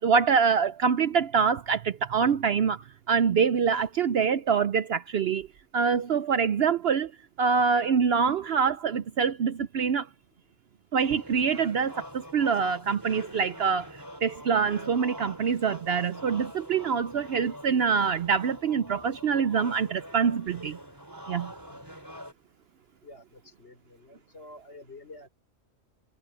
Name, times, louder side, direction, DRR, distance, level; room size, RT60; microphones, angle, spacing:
voice 1, 0.0-5.5 5.7-7.1 7.4-10.1 10.9-20.8 21.3-21.5, right 6 dB, 60° right, 0.8 m, -25 dB
sound 1, 11.0-22.3, equal, 15° right, 3.7 m, -44 dB
voice 2, 23.0-25.3, left 2 dB, 55° left, 5.0 m, -49 dB
omnidirectional pair, 1.3 m